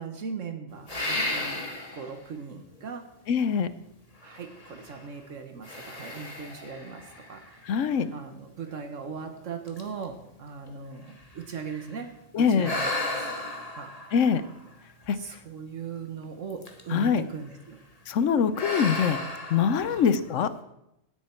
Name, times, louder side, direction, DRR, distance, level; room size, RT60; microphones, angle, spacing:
voice 1, 0.0-1.7 1.9-3.1 4.2-7.8 8.1-12.1 12.4-13.3 13.7-13.9 15.1-17.8 19.8-20.1, right 5 dB, 70° right, 7 dB, 1.4 m, -39 dB
sound 1, 0.9-2.2 2.8-2.9 4.2-5.1 5.6-8.0 8.7-8.8 9.3-9.4 9.7-12.0 12.6-15.3 16.5-17.0 17.3-17.7 18.5-20.4, left 1 dB, 30° left, 1.7 m, -35 dB
voice 2, 3.3-3.7 7.7-8.1 12.3-12.7 14.1-14.4 15.1-15.2 16.9-17.2 18.1-19.2 19.5-20.5, left 7 dB, 70° left, 14 dB, 1.1 m, -23 dB
17.0 x 9.2 x 4.4 m, 0.85 s
omnidirectional pair, 1.4 m